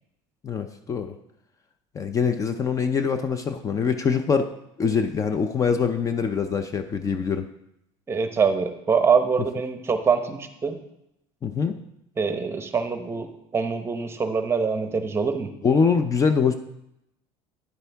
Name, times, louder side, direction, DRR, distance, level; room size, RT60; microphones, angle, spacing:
voice 1, 0.4-1.2 1.9-4.5 4.8-7.5 11.4-11.8 15.6-16.5, left 6 dB, 25° left, 8 dB, 0.5 m, -23 dB
voice 2, 8.1-10.8 12.2-15.5, right 5 dB, 20° right, 7 dB, 0.9 m, -24 dB
10.0 x 8.0 x 3.5 m, 0.82 s
supercardioid pair, 125°, 13 cm